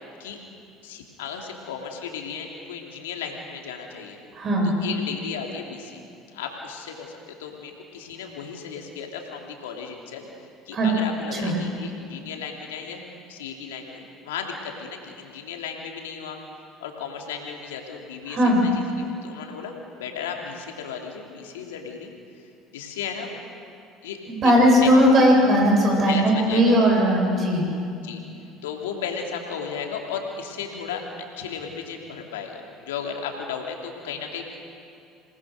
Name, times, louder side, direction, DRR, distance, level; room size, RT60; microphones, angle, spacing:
voice 1, 0.8-4.2 4.6-6.0 6.3-10.3 10.7-13.0 13.3-16.4 16.8-22.1 22.7-23.3 24.0-24.5 24.8-24.9 26.1-26.8 28.0-28.2 28.6-31.0 31.4-34.6, left 6 dB, 85° left, 2 dB, 2.9 m, -35 dB
voice 2, 4.3-4.7 10.7-10.9 11.3-11.5 18.3-18.7 24.3-27.7, equal, 45° right, 0 dB, 7.8 m, -18 dB
27.5 x 19.5 x 6.5 m, 2.5 s
hypercardioid pair, 70°, 0 cm